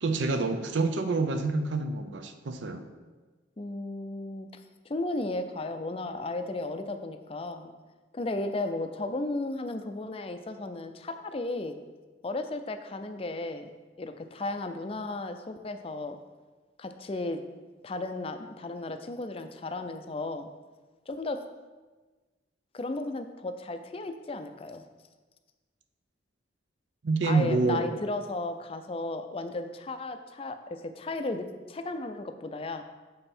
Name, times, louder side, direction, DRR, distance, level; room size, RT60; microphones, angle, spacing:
voice 1, 0.0-2.9 27.0-27.9, right 3 dB, 75° right, 7 dB, 0.6 m, -27 dB
voice 2, 3.6-7.7 8.1-11.8 12.2-13.7 14.0-16.2 16.8-17.4 17.8-20.5 21.1-21.4 22.7-24.8 27.2-32.8, left 2 dB, 30° left, 8 dB, 0.4 m, -34 dB
6.9 x 5.4 x 4.3 m, 1.3 s
head